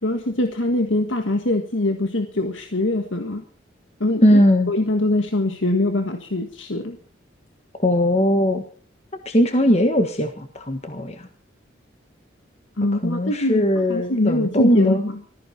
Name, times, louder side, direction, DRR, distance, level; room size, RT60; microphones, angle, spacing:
voice 1, 0.0-3.4 4.0-4.4 4.7-7.0 12.8-15.2, left 1 dB, 85° left, 6 dB, 1.6 m, -23 dB
voice 2, 4.2-4.7 7.8-8.6 9.2-11.3 13.0-15.1, equal, 35° left, 6 dB, 1.5 m, -19 dB
20.0 x 14.5 x 4.3 m, 0.44 s
head